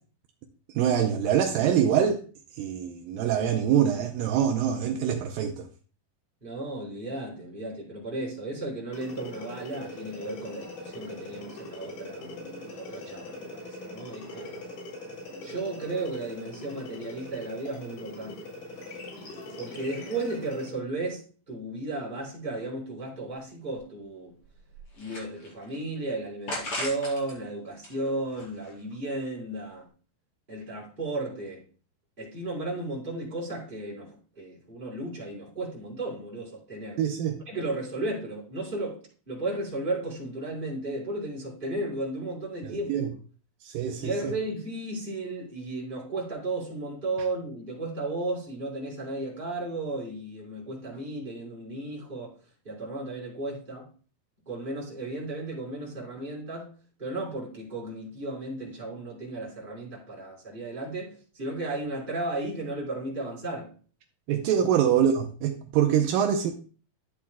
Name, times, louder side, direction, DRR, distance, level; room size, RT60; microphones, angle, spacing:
voice 1, 0.7-2.2 2.6-5.7 37.0-37.4 42.6-43.1 43.6-44.3 64.3-66.5, right 9 dB, 80° right, 2.4 m, -25 dB
voice 2, 6.4-14.6 15.4-18.5 19.6-24.3 25.0-29.8 30.5-31.6 32.2-37.0 37.5-42.9 44.0-52.3 52.6-53.9 54.4-56.7 57.0-63.7 64.6-64.7, right 2 dB, 15° right, 4.7 m, -34 dB
sound 1, 8.9-20.8, left 1 dB, 80° left, 5.1 m, -41 dB
sound 2, 23.8-23.9 24.4-25.8 26.5-27.3 27.7-28.9, left 1 dB, 40° left, 4.8 m, -37 dB
13.5 x 8.6 x 2.3 m
omnidirectional pair, 4.1 m